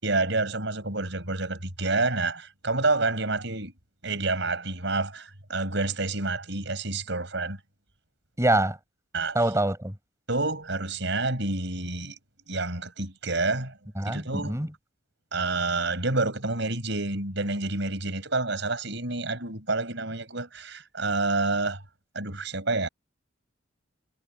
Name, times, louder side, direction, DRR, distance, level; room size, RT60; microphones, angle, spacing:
voice 1, 0.0-3.7 4.0-7.6 9.1-9.4 10.3-12.2 12.5-13.8 14.0-14.6 15.3-21.8 22.1-22.9, right 3 dB, 65° right, 7.3 m, -28 dB
voice 2, 8.4-8.8 9.3-9.9 14.0-14.7, right 1 dB, 15° right, 5.4 m, -25 dB
head